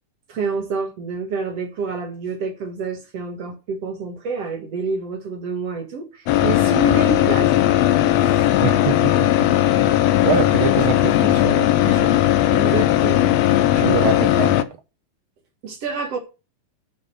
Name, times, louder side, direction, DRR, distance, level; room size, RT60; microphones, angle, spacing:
voice 1, 0.3-7.5 7.9-8.6 12.5-13.8 15.6-16.2, right 4 dB, 55° right, 2.6 m, -28 dB
sound 1, 6.3-14.6, left 13 dB, 75° left, 1.6 m, -17 dB
voice 2, 8.6-9.3 9.6-10.0 10.2-12.2 13.7-14.8, right 8 dB, 70° right, 1.2 m, -25 dB
9.5 x 5.6 x 6.1 m
omnidirectional pair, 3.6 m